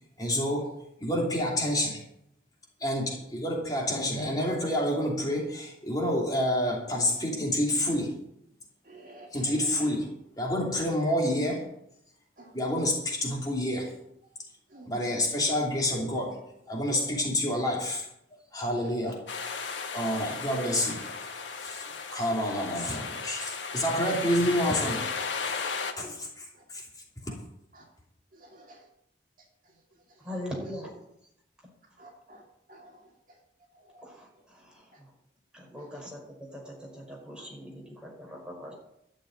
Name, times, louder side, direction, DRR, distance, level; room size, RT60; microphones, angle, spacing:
voice 1, 0.2-0.7 1.0-2.0 2.8-8.1 9.3-10.1 10.4-11.6 12.5-13.9 14.9-16.4 16.7-18.1 18.5-19.2 19.9-21.1 21.6-21.8 22.1-25.0 25.4-26.8, left 1 dB, 20° left, -2 dB, 2.9 m, -28 dB
voice 2, 8.9-9.5 12.4-12.5 14.7-15.0 17.1-17.2 26.0-26.1 28.4-28.8 32.0-32.4 32.7-32.9 33.9-34.0 35.7-36.0, right 1 dB, 45° right, 0 dB, 2.5 m, -50 dB
sound 1, 19.3-25.9, left 5 dB, 90° left, 1.6 m, -35 dB
voice 3, 30.2-30.9 34.0-34.7 35.5-38.7, equal, 5° right, -2 dB, 5.0 m, -41 dB
12.5 x 7.1 x 9.3 m, 0.77 s
head